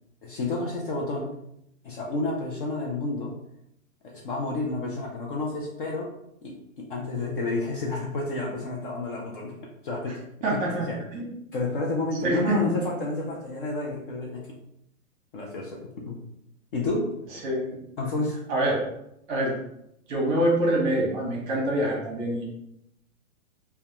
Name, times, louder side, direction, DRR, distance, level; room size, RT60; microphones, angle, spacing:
voice 1, 0.2-1.4 1.8-3.4 4.0-6.1 6.4-10.2 10.5-11.0 11.5-14.6 15.3-16.2 16.7-17.1 18.0-18.5, left 2 dB, 40° left, -2 dB, 0.4 m, -30 dB
voice 2, 10.4-10.9 11.1-11.3 12.2-12.7 17.4-17.8 18.5-18.8 19.3-19.5 20.1-22.5, right 1 dB, 35° right, -2 dB, 0.9 m, -25 dB
2.3 x 2.2 x 2.8 m, 0.80 s
hypercardioid pair, 150°, 42 cm